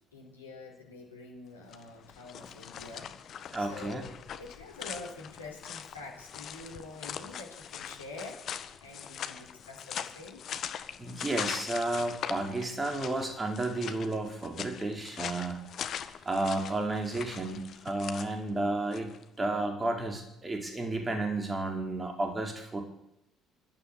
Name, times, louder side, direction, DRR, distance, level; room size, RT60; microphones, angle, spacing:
voice 1, 0.1-10.4, left 2 dB, 85° left, 0 dB, 4.4 m, -46 dB
sound 1, 1.6-19.2, left 9 dB, 50° left, 1.6 m, -41 dB
voice 2, 3.5-4.0 11.0-15.6 16.2-22.8, right 2 dB, 20° right, 4 dB, 4.9 m, -32 dB
25.0 x 12.5 x 8.7 m, 0.84 s
figure-of-eight pair, 50°, 0 cm